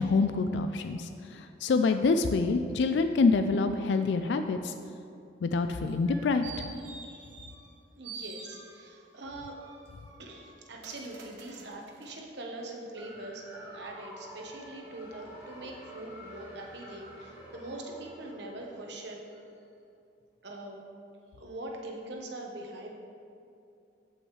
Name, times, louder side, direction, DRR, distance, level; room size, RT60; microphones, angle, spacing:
voice 1, 0.0-4.7 5.4-6.5, left 4 dB, 65° left, 8 dB, 0.3 m, -26 dB
sound 1, 5.9-7.8 8.0-9.1 9.6-12.2 12.7-12.8, right 4 dB, 90° right, 1.1 m, -47 dB
voice 2, 6.7-7.3 8.0-9.6 10.2-19.3 20.4-20.9 21.3-22.9, right 2 dB, 65° right, 0 dB, 1.1 m, -43 dB
sound 2, 13.0-19.6, equal, 10° right, 1.9 m, -49 dB
14.0 x 5.4 x 3.2 m, 2.6 s
head